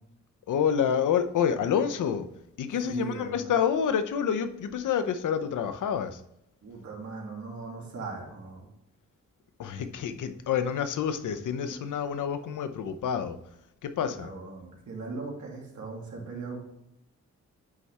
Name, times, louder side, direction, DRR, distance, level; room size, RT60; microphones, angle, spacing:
voice 1, 0.5-2.2 2.6-6.2 9.6-13.4 13.8-14.3, left 8 dB, 85° left, 10 dB, 0.8 m, -28 dB
voice 2, 2.8-3.5 6.6-8.7 11.6-11.8 14.0-16.6, right 4 dB, 70° right, -1 dB, 2.5 m, -39 dB
9.7 x 4.2 x 3.3 m, 0.80 s
cardioid pair, 75°, 30 cm